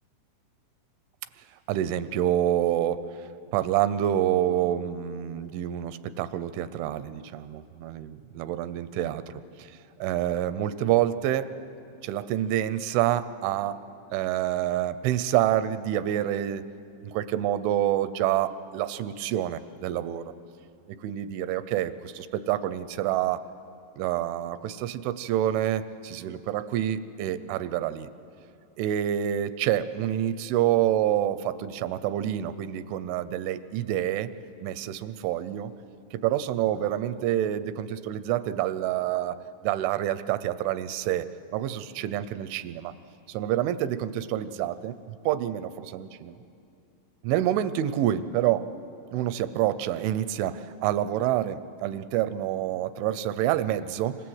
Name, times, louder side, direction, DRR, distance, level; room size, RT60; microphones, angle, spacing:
voice 1, 1.7-3.0 3.5-9.2 9.6-9.7 10.0-11.5 12.0-13.8 14.1-16.6 17.0-20.2 21.0-23.4 24.0-28.1 28.8-34.3 34.6-35.7 36.1-39.4 39.6-41.3 41.5-42.9 43.3-45.0 45.3-46.4 47.2-48.7 49.1-54.2, right 12 dB, 85° right, 13 dB, 3.2 m, -27 dB
26.5 x 26.0 x 7.9 m, 2.6 s
omnidirectional pair, 5.4 m